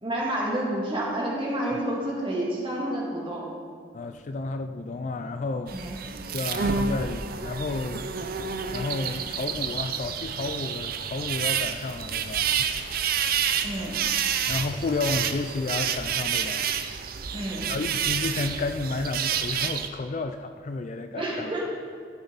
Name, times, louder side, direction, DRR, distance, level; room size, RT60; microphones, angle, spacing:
voice 1, 0.0-3.5 5.7-6.0 13.6-14.0 17.3-17.7 21.1-21.7, right 1 dB, 30° right, -3 dB, 2.0 m, -29 dB
voice 2, 3.9-5.8 6.3-8.4 8.7-12.7 14.5-16.7 17.7-21.5, left 3 dB, 40° left, 9 dB, 0.3 m, -31 dB
sound 1, 5.7-19.9, right 7 dB, 50° right, 0.5 m, -29 dB
13.0 x 7.1 x 4.0 m, 2.2 s
head